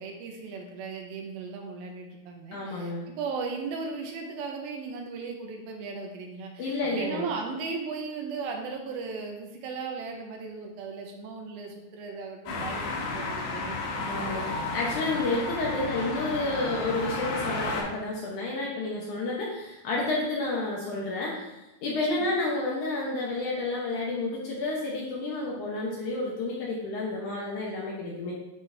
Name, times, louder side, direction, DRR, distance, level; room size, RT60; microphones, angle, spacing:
voice 1, 0.0-14.0 22.1-22.3, right 4 dB, 80° right, 2 dB, 2.5 m, -37 dB
voice 2, 2.5-3.0 6.6-7.2 14.1-21.5 21.8-28.4, left 2 dB, 70° left, -4 dB, 2.0 m, -30 dB
sound 1, 12.5-17.8, left 3 dB, 90° left, 3.4 m, -32 dB
9.2 x 4.0 x 3.3 m, 0.98 s
omnidirectional pair, 4.4 m